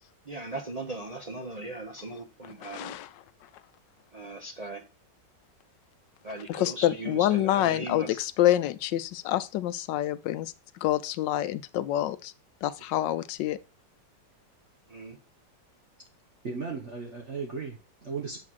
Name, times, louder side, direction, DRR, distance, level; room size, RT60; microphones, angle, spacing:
voice 1, 0.3-3.0 4.1-4.8 6.2-8.2 14.9-15.2, right 2 dB, 75° right, 0.3 m, -38 dB
voice 2, 2.6-3.1 6.5-10.5 10.8-12.3 12.6-13.6, left 13 dB, 85° left, 1.3 m, -27 dB
voice 3, 16.4-18.4, right 5 dB, 45° right, 1.2 m, -36 dB
7.6 x 3.7 x 6.2 m
omnidirectional pair, 1.9 m